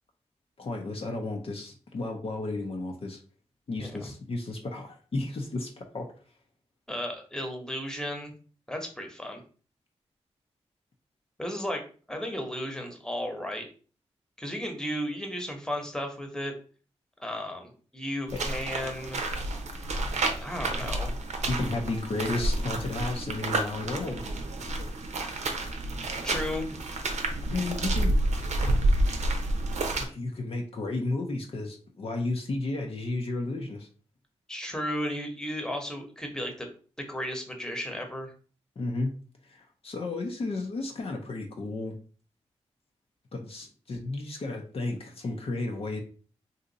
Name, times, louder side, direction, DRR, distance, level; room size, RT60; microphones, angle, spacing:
voice 1, 0.6-3.2 3.7-6.1 18.3-18.4 20.6-20.7 21.5-24.2 27.4-28.1 28.6-28.7 30.0-33.9 38.8-39.1 39.4-42.0 43.3-46.0, left 2 dB, 55° left, 2 dB, 0.7 m, -33 dB
voice 2, 3.8-4.1 6.9-8.3 8.7-9.4 11.4-13.7 14.4-16.5 17.2-19.2 20.4-21.2 26.2-26.8 34.5-36.7 37.0-38.3, equal, 5° left, 3 dB, 1.0 m, -34 dB
sound 1, 18.3-30.0, right 2 dB, 80° right, 0.6 m, -29 dB
2.7 x 2.5 x 4.0 m, 0.40 s
cardioid pair, 50°, 12 cm